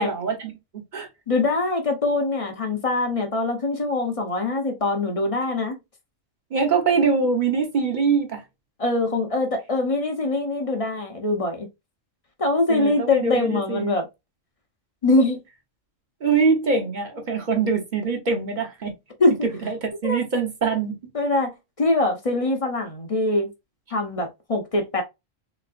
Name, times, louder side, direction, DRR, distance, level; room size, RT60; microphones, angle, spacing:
voice 1, 0.0-1.1 6.5-8.4 12.7-14.0 16.2-18.9 19.6-21.0, right 5 dB, 40° right, 0.9 m, -23 dB
voice 2, 1.3-5.8 8.8-11.7 12.4-14.1 15.0-15.4 19.2-19.5 20.0-20.2 21.1-21.5 21.8-23.5 23.9-25.0, left 2 dB, 35° left, 0.6 m, -23 dB
3.5 x 3.1 x 2.4 m
omnidirectional pair, 1.4 m